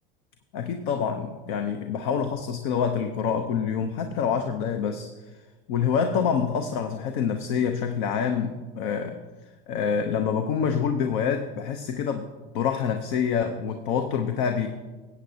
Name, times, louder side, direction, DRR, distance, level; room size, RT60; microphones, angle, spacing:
voice 1, 0.5-5.1 5.7-9.2 9.7-12.3 12.5-14.7, left 7 dB, 60° left, 6 dB, 0.8 m, -26 dB
18.5 x 8.3 x 2.8 m, 1.3 s
hypercardioid pair, 90°, 29 cm